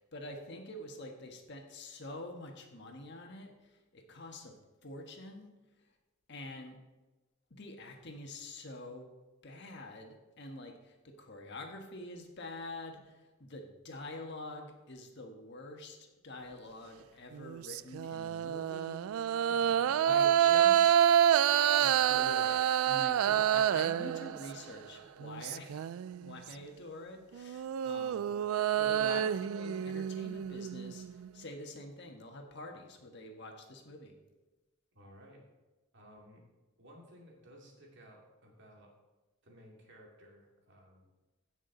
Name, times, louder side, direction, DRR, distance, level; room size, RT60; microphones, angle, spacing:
voice 1, 0.0-4.5 4.8-5.5 6.3-6.8 7.5-9.1 9.4-19.3 20.0-21.1 21.8-25.9 26.2-28.3 28.8-34.2, left 2 dB, 55° left, 3 dB, 1.5 m, -46 dB
sound 1, 17.3-24.8 25.2-26.4 27.3-31.3, right 10 dB, 80° right, 0.3 m, -28 dB
voice 2, 19.5-19.9 34.9-35.4 35.9-36.4 36.8-38.9 39.4-41.1, equal, 55° right, -1 dB, 2.5 m, -56 dB
16.5 x 6.3 x 3.9 m, 1.1 s
head